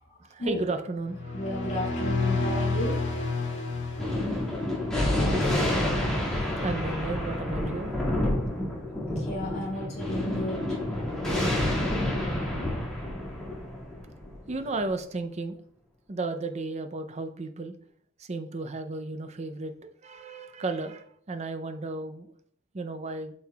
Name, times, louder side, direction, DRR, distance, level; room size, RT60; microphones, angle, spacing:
voice 1, 0.2-1.3 6.6-7.9 14.5-15.6 16.1-17.7 18.2-19.7 20.0-22.3 22.7-23.3, right 3 dB, 30° right, 8 dB, 0.5 m, -33 dB
sound 1, 1.0-4.9, left 3 dB, 60° left, 2.0 m, -30 dB
voice 2, 1.3-3.1 8.8-10.7, left 1 dB, 35° left, -5 dB, 3.0 m, -33 dB
Thunder, 4.0-14.8, left 1 dB, 5° left, 2.0 m, -29 dB
8.3 x 6.1 x 2.3 m, 0.62 s
head